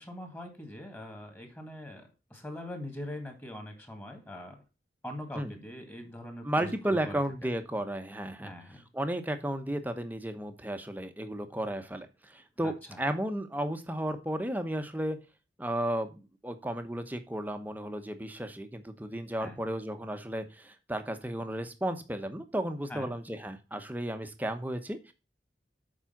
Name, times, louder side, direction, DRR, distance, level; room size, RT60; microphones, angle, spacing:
voice 1, 0.0-4.6 5.0-7.2 8.4-8.9 12.6-13.0 19.4-19.6 22.9-23.1, left 1 dB, 10° left, 4 dB, 2.0 m, -42 dB
voice 2, 6.4-15.2 15.6-25.1, right 1 dB, 10° right, 7 dB, 0.9 m, -34 dB
7.4 x 4.9 x 5.7 m, 0.29 s
head